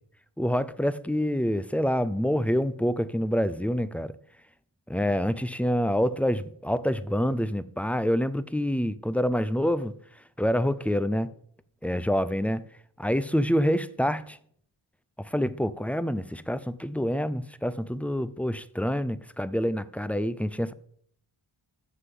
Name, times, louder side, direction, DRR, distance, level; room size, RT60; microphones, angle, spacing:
voice 1, 0.4-4.1 4.9-9.9 10.4-11.3 11.8-12.6 13.0-14.4 15.2-20.7, equal, 5° left, 0.3 m, -27 dB
7.1 x 6.7 x 7.6 m
wide cardioid pair, 70°, 49 cm